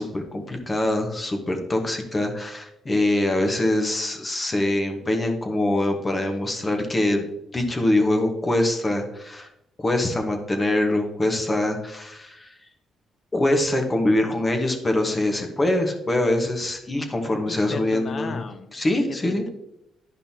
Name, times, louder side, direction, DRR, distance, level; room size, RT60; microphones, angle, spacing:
voice 1, 0.0-7.3 7.5-9.5 9.8-12.6 13.3-18.4 18.7-19.5, left 1 dB, 25° left, 4 dB, 1.2 m, -24 dB
voice 2, 17.5-18.7 19.2-19.5, left 5 dB, 45° left, 10 dB, 0.7 m, -35 dB
10.5 x 5.4 x 2.8 m, 0.84 s
cardioid pair, 90°, 0 cm